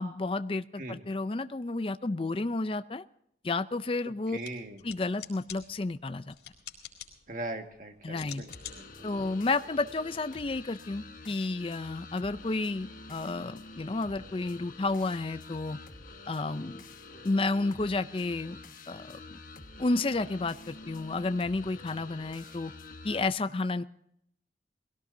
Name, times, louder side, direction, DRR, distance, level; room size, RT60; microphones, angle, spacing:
voice 1, 0.0-3.0 3.4-4.4 4.8-6.4 8.0-8.4 9.0-15.8 16.3-16.8 17.2-18.6 18.9-19.4 19.8-22.7 23.0-23.8, left 3 dB, 30° left, 0.4 m, -31 dB
sound 1, 4.3-10.4, left 10 dB, 85° left, 3.8 m, -49 dB
voice 2, 4.3-4.8 7.3-8.9, right 2 dB, 45° right, 1.8 m, -40 dB
sound 2, 8.5-23.3, left 3 dB, 50° left, 1.4 m, -48 dB
21.5 x 17.0 x 2.7 m
head